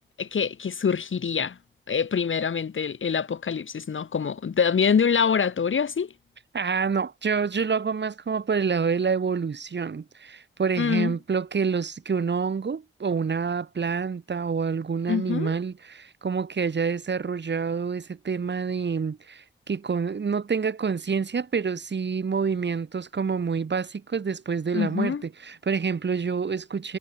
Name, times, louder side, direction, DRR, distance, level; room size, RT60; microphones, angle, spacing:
voice 1, 0.2-1.6 1.9-6.1 10.8-11.1 15.1-15.6 24.7-25.2, left 6 dB, 75° left, 5.7 m, -25 dB
voice 2, 6.5-27.0, right 5 dB, 60° right, 4.7 m, -27 dB
wide cardioid pair, 115°, 20 cm